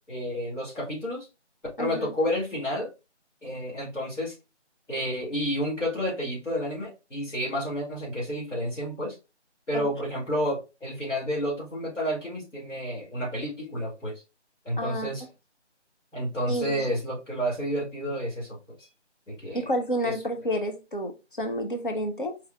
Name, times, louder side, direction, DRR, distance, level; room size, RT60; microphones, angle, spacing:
voice 1, 0.1-1.3 1.8-2.9 3.4-4.3 4.9-9.2 9.7-14.1 14.6-15.2 16.1-18.6 19.3-19.7 20.0-20.1, equal, 90° left, 2.5 m, -30 dB
voice 2, 1.8-2.1 9.7-9.9 14.8-15.1 16.5-16.9 19.5-22.4, equal, 45° left, 0.6 m, -30 dB
4.6 x 2.4 x 3.3 m
figure-of-eight pair, 175°, 36 cm